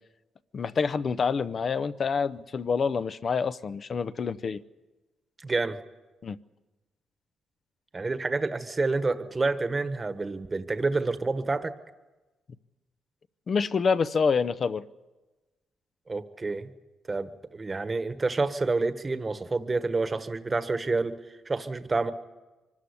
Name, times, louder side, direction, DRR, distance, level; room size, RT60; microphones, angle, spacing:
voice 1, 0.5-4.6 6.2-6.4 13.5-14.8, left 5 dB, 45° left, 13 dB, 0.8 m, -27 dB
voice 2, 5.4-5.8 7.9-11.7 16.1-16.7 17.1-21.1 21.4-22.1, right 3 dB, 25° right, 10 dB, 1.3 m, -28 dB
24.5 x 13.5 x 9.9 m, 1.2 s
cardioid pair, 90°, 0 cm